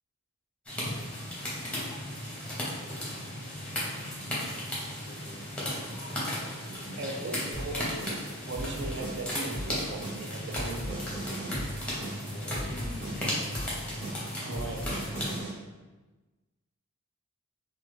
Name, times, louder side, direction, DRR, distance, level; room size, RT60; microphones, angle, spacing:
sound 1, 0.7-15.4, left 1 dB, 5° left, 0.8 m, -35 dB
voice 1, 5.0-7.8 12.3-13.4, left 1 dB, 40° left, 0 dB, 0.4 m, -47 dB
voice 2, 7.0-7.8 8.4-11.0 14.4-15.2, right 2 dB, 55° right, 1 dB, 0.4 m, -38 dB
sound 2, 7.5-15.5, right 1 dB, 25° right, 0.8 m, -37 dB
3.1 x 2.2 x 3.1 m, 1.2 s
head